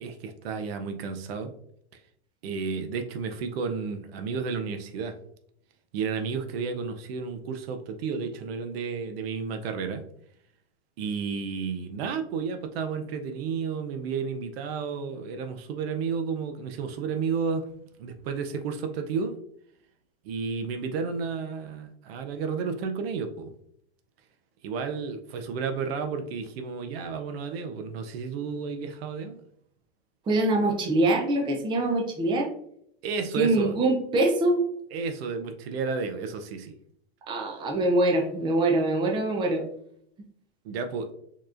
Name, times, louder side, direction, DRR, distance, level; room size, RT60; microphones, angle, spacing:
voice 1, 0.0-1.5 1.9-2.0 2.4-5.2 5.9-10.0 11.0-17.7 18.0-19.4 20.2-23.5 24.6-29.4 33.0-33.8 34.9-36.8 40.6-41.1, right 5 dB, 65° right, 7 dB, 0.6 m, -32 dB
voice 2, 30.3-32.5 33.4-34.6 37.3-39.6, right 2 dB, 15° right, 2 dB, 0.5 m, -24 dB
4.5 x 3.0 x 2.5 m, 0.70 s
supercardioid pair, 130°, 33 cm